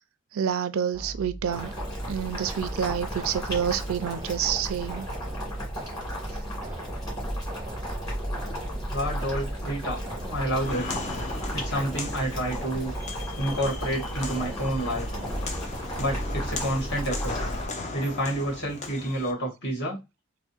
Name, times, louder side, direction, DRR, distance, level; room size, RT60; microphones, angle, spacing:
voice 1, 0.3-1.7 2.1-5.1, right 8 dB, 80° right, 0.4 m, -28 dB
sound 1, 0.9-15.6, right 2 dB, 20° right, 0.6 m, -39 dB
Boiling, 1.5-17.7, equal, 20° left, 2.2 m, -34 dB
voice 2, 8.9-10.9 11.5-12.9 13.4-15.1 16.0-17.4 17.9-20.0, right 1 dB, 55° left, 1.9 m, -29 dB
Walk footsteps, 10.5-19.3, left 3 dB, 35° left, 0.5 m, -37 dB
3.4 x 2.1 x 4.2 m
head